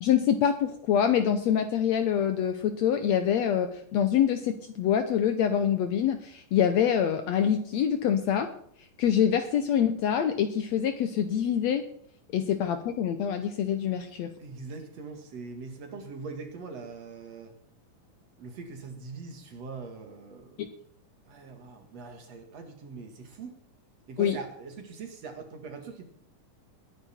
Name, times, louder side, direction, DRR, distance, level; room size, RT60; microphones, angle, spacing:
voice 1, 0.0-8.5 9.0-11.8 12.3-14.3 24.2-24.4, left 9 dB, 70° left, 9 dB, 1.8 m, -25 dB
voice 2, 14.4-17.5 18.4-20.6 21.3-23.5 24.1-26.1, right 4 dB, 55° right, 5 dB, 2.9 m, -42 dB
20.5 x 9.5 x 4.4 m, 0.63 s
omnidirectional pair, 3.8 m